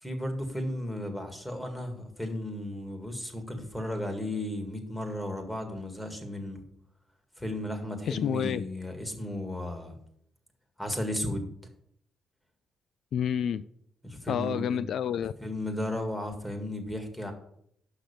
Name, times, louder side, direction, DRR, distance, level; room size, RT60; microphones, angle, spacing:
voice 1, 0.0-6.6 7.4-9.9 10.8-11.4 14.0-14.8 15.4-17.3, left 1 dB, 10° left, 5 dB, 1.8 m, -34 dB
voice 2, 8.1-8.6 13.1-13.6 14.3-15.3, left 8 dB, 65° left, 15 dB, 0.3 m, -29 dB
6.4 x 5.9 x 6.8 m, 0.71 s
cardioid pair, 90°, 0 cm